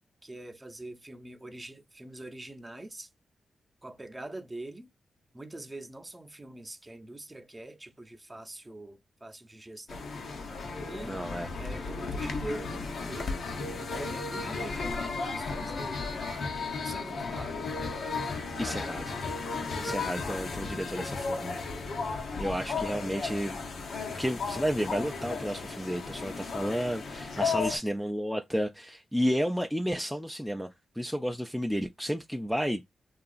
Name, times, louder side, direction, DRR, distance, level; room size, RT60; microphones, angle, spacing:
voice 1, 0.2-3.1 3.8-4.9 5.3-10.1 10.8-11.2 11.6-13.3 13.7-16.2 16.8-17.6 19.7-19.9 22.3-22.5 27.3-27.9, right 2 dB, 20° right, 0.7 m, -44 dB
sound 1, 9.9-27.8, left 4 dB, 70° left, 0.7 m, -34 dB
voice 2, 11.0-11.5 18.6-19.1 19.8-22.0 22.4-23.6 24.1-30.7 31.0-32.8, equal, ahead, 0.4 m, -32 dB
2.8 x 2.4 x 2.4 m
cardioid pair, 60°, 0 cm